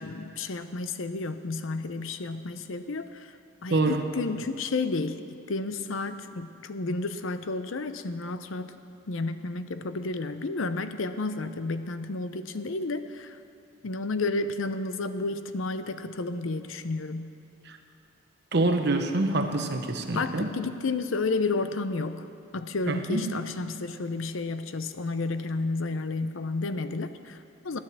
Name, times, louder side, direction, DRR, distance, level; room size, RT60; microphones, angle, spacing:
voice 1, 0.0-5.2 5.5-8.8 9.1-13.4 13.8-17.3 20.1-22.3 22.5-27.8, left 3 dB, 70° left, 10 dB, 0.7 m, -31 dB
voice 2, 3.7-4.0 17.7-17.8 18.5-20.5 22.9-23.3, right 2 dB, 55° right, 5 dB, 1.1 m, -26 dB
14.0 x 10.0 x 7.4 m, 2.6 s
head